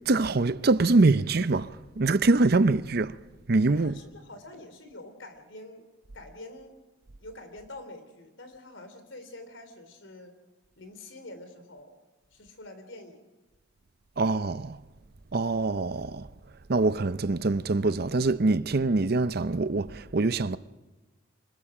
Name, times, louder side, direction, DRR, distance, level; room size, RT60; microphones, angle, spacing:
voice 1, 0.1-3.2 3.5-4.0 14.2-14.8 15.3-16.3 16.7-20.6, right 3 dB, 50° right, 0.7 m, -24 dB
voice 2, 3.7-5.9 6.1-6.7 7.2-10.3 10.8-12.0 12.3-13.3, left 2 dB, 75° left, 3.6 m, -46 dB
25.5 x 21.5 x 5.0 m
head